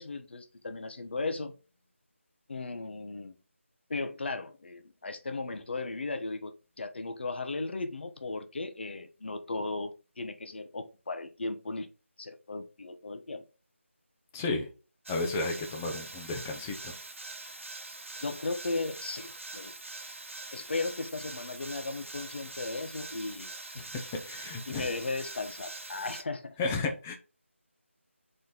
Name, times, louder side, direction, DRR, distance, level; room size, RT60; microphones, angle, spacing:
voice 1, 0.0-1.5 2.5-3.3 3.9-11.9 12.2-13.4 18.2-19.7 20.5-24.1 24.7-26.6, left 3 dB, 50° left, 0.7 m, -36 dB
voice 2, 14.3-14.7 15.1-16.9 24.2-24.9 26.6-27.1, left 3 dB, 10° left, 0.4 m, -33 dB
sound 1, 15.1-26.2, right 2 dB, 70° right, 0.9 m, -44 dB
4.3 x 3.2 x 3.9 m
figure-of-eight pair, 165°, 7 cm